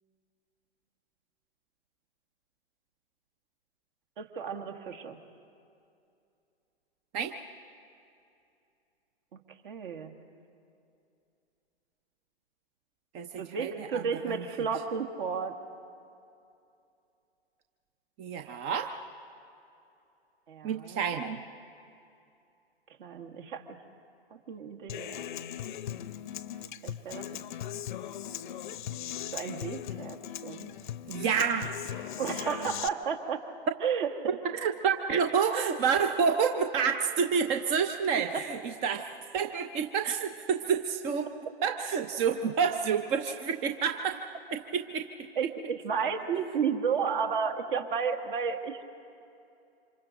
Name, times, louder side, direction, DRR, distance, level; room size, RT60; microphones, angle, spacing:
voice 1, 4.2-5.2 9.3-9.4 9.6-10.1 13.4-15.5 20.5-21.1 23.0-23.8 24.3-25.5 26.8-27.3 29.3-30.2 30.4-30.7 32.2-33.4 33.8-34.4 45.4-48.8, right 6 dB, 50° right, 4 dB, 1.9 m, -32 dB
voice 2, 13.1-14.4 18.2-19.0 20.6-21.4 31.1-31.7 34.5-41.3 41.6-44.2 44.5-45.1, right 6 dB, 20° right, 7 dB, 0.6 m, -29 dB
Human voice / Acoustic guitar, 24.9-32.9, left 11 dB, 45° left, 0.7 m, -39 dB
28.5 x 26.0 x 3.9 m, 2.6 s
figure-of-eight pair, 125°, 33 cm